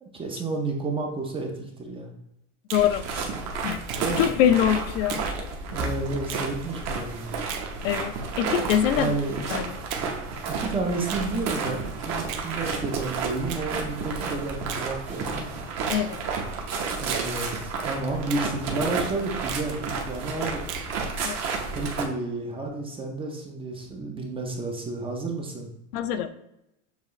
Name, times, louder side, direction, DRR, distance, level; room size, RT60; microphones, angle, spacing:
voice 1, 0.0-1.5 1.8-2.1 4.0-4.3 5.7-7.5 9.0-9.8 10.6-15.5 17.0-20.6 21.7-25.7, right 3 dB, 15° right, 1 dB, 0.5 m, -31 dB
voice 2, 2.7-3.0 3.6-3.8 4.2-5.2 7.8-9.2 9.5-9.7 15.9-16.2 21.2-21.4 25.9-26.3, left 10 dB, 70° left, 9 dB, 0.6 m, -23 dB
sound 1, 2.7-22.0, right 4 dB, 40° right, 0.8 m, -31 dB
Finger snapping, 2.7-2.9 3.9-4.1 5.1-5.3 6.3-6.5 7.5-7.7 8.7-8.9 9.9-10.1 11.1-11.3 12.3-12.5 13.5-13.7 14.7-14.9 15.9-16.1 17.1-17.3 18.3-18.5 19.5-19.7 20.7-20.9, right 8 dB, 80° right, 0.8 m, -37 dB
6.8 x 2.4 x 3.0 m, 0.84 s
supercardioid pair, 135°, 40 cm